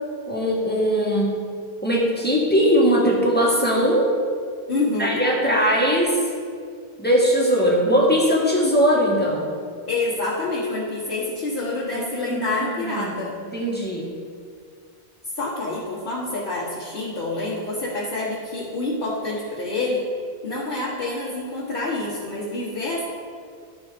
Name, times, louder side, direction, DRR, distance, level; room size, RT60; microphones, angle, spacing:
voice 1, 0.3-1.4 1.8-4.1 5.0-6.2 7.0-9.5 11.9-13.2 13.5-14.1, equal, 10° left, -4 dB, 1.6 m, -20 dB
voice 2, 4.7-5.2 9.9-13.3 15.4-20.0 20.4-23.0, left 2 dB, 60° left, -9 dB, 1.6 m, -27 dB
13.0 x 4.3 x 5.1 m, 2.2 s
omnidirectional pair, 1.1 m